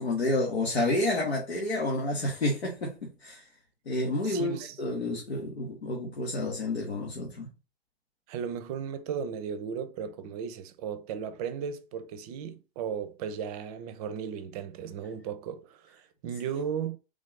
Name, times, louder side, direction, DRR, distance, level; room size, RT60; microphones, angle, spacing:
voice 1, 0.0-3.5 3.9-7.5, left 2 dB, 90° left, 1.0 m, -30 dB
voice 2, 4.2-4.8 8.3-17.0, right 7 dB, 40° right, 0.5 m, -36 dB
3.2 x 2.6 x 3.7 m
hypercardioid pair, 110°, 31 cm